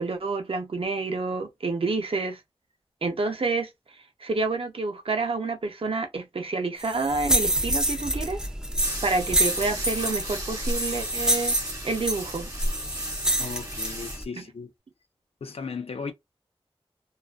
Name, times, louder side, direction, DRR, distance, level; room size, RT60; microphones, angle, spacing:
voice 1, 0.0-2.4 3.0-3.7 4.2-8.4 9.0-11.6 11.8-12.5, right 3 dB, 70° right, 0.6 m, -28 dB
sound 1, 6.8-14.2, right 1 dB, 5° right, 0.5 m, -27 dB
sound 2, 8.8-14.2, right 1 dB, 30° right, 1.2 m, -38 dB
voice 2, 13.4-14.7 15.4-16.1, left 5 dB, 80° left, 0.4 m, -36 dB
2.4 x 2.3 x 2.4 m
wide cardioid pair, 65°, 10 cm